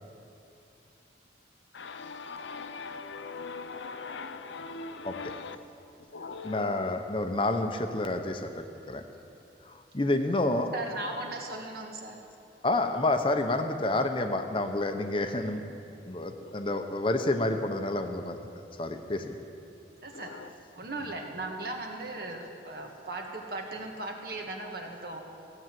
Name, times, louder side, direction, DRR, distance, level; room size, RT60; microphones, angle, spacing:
voice 1, 1.7-5.6 6.1-6.9 16.4-16.5 20.1-20.5, left 4 dB, 85° left, 0.7 m, -40 dB
voice 2, 6.4-9.0 9.7-10.7 12.6-15.6 16.0-18.4 18.8-19.4, left 2 dB, 30° left, 0.8 m, -29 dB
voice 3, 10.7-12.2 20.0-20.3 20.7-25.2, right 2 dB, 55° right, 1.6 m, -37 dB
15.5 x 8.9 x 7.6 m
head